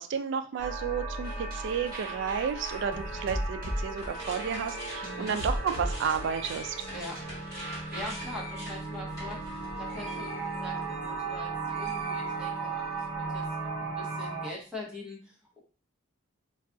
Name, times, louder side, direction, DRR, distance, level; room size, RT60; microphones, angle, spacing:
voice 1, 0.0-6.8, right 7 dB, 65° right, 9 dB, 0.3 m, -32 dB
sound 1, 0.6-14.5, right 4 dB, 45° left, 0.7 m, -36 dB
sound 2, 1.2-8.1, equal, 45° right, 1.0 m, -37 dB
sound 3, 3.9-11.4 11.7-12.8, equal, 15° left, 1.1 m, -45 dB
voice 2, 5.0-5.3 6.9-7.2 7.9-12.9 13.2-15.6, left 1 dB, 5° right, -3 dB, 0.8 m, -42 dB
2.3 x 2.3 x 3.7 m, 0.37 s
head